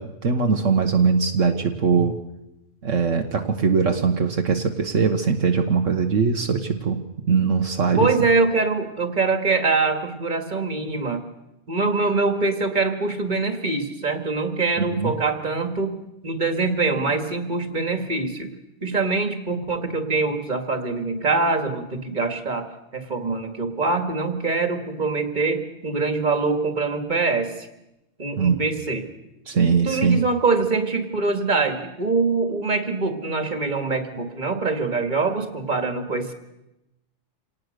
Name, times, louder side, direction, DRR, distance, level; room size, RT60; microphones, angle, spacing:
voice 1, 0.0-2.2 2.8-7.0 7.3-8.1 14.8-15.1 28.4-28.6 29.5-30.2, right 5 dB, 70° right, 4 dB, 1.6 m, -21 dB
voice 2, 7.9-11.2 11.7-15.9 16.2-18.5 18.8-22.7 22.9-27.5 28.2-29.1 29.8-36.3, right 3 dB, 35° right, 6 dB, 2.2 m, -24 dB
27.0 x 18.5 x 6.7 m, 0.91 s
omnidirectional pair, 1.4 m